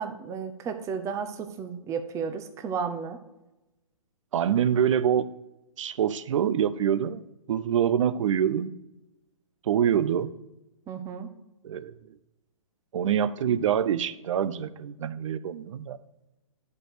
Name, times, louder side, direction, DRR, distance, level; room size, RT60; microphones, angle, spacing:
voice 1, 0.0-3.2 10.9-11.3, right 6 dB, 15° right, 8 dB, 0.7 m, -33 dB
voice 2, 4.3-5.3 5.8-7.2 7.5-8.7 9.7-10.3 11.6-11.9 12.9-16.0, right 9 dB, 60° right, 16 dB, 0.6 m, -25 dB
11.0 x 4.6 x 4.9 m, 0.97 s
hypercardioid pair, 135°, 18 cm